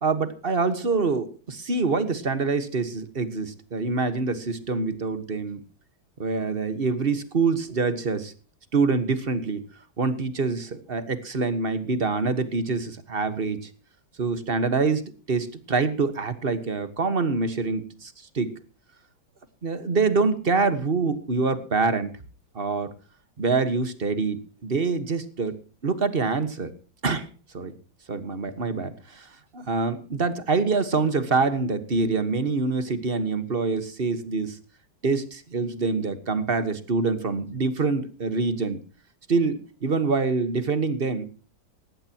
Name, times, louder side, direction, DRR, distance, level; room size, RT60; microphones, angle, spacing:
voice 1, 0.0-5.6 6.2-8.3 8.7-9.6 10.0-13.7 14.2-18.5 19.6-22.1 22.5-22.9 23.4-24.4 24.6-25.6 25.8-26.7 27.0-27.3 27.5-27.7 28.1-34.6 35.0-38.8 39.3-41.2, right 4 dB, 30° right, 12 dB, 1.4 m, -25 dB
19.0 x 16.5 x 3.0 m, 0.35 s
omnidirectional pair, 2.2 m